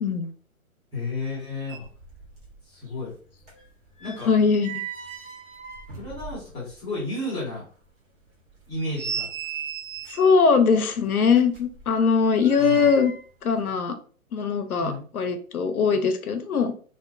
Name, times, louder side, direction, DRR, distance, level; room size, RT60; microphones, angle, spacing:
voice 1, 0.0-0.3 4.2-4.7 10.1-13.1 13.4-14.0 14.3-16.7, left 5 dB, 90° left, 7 dB, 0.6 m, -21 dB
voice 2, 0.9-1.8 2.7-3.1 4.0-4.3 6.0-7.6 8.7-9.3 12.6-12.8 14.8-15.0, left 2 dB, 10° left, -8 dB, 0.7 m, -32 dB
sound 1, 1.3-1.4 1.6-2.6 2.9-6.8 7.2-7.3 7.8-7.9 8.5-10.4 11.3-13.3 13.6-13.7, right 6 dB, 35° right, 0.9 m, -37 dB
2.4 x 2.1 x 2.3 m, 0.41 s
figure-of-eight pair, 130°, 43 cm